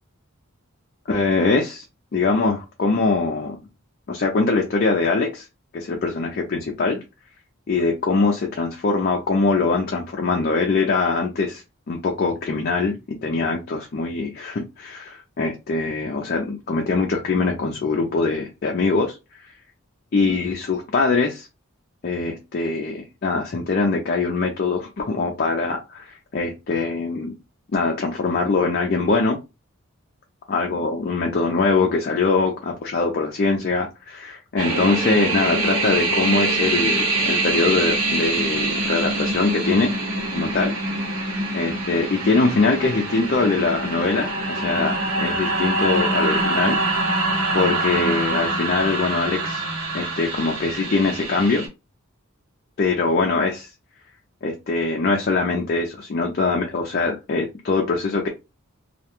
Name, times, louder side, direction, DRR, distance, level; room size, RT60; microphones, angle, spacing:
voice 1, 1.1-1.8 2.1-3.6 4.1-5.4 5.7-7.0 7.7-11.6 11.9-19.2 20.1-21.5 22.0-27.3 27.7-29.4 30.5-39.9 40.3-40.8 41.5-46.8 47.5-49.6 49.9-51.7 52.8-53.7 54.4-58.3, left 3 dB, 45° left, 1 dB, 0.4 m, -22 dB
sound 1, 34.6-51.7, right 2 dB, 90° right, 0.9 m, -24 dB
2.3 x 2.2 x 2.8 m, 0.26 s
head